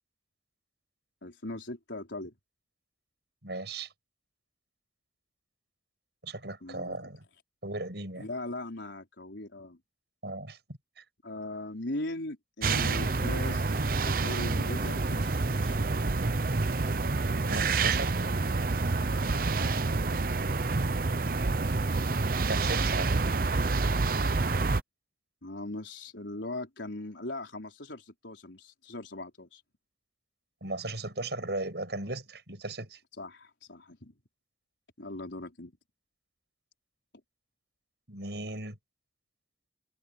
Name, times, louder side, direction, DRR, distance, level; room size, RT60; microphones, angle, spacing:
voice 1, 1.2-2.3 6.6-7.0 8.2-9.8 11.2-15.8 19.6-19.8 25.4-29.6 33.2-34.1 35.0-35.7, left 2 dB, 85° left, 4.4 m, -39 dB
voice 2, 3.4-3.9 6.2-7.2 7.6-8.3 10.2-10.6 11.0-11.1 17.5-18.3 22.5-23.2 30.6-33.0 38.1-38.8, right 2 dB, 65° right, 6.2 m, -36 dB
sound 1, 12.6-24.8, right 3 dB, 50° right, 0.7 m, -28 dB
head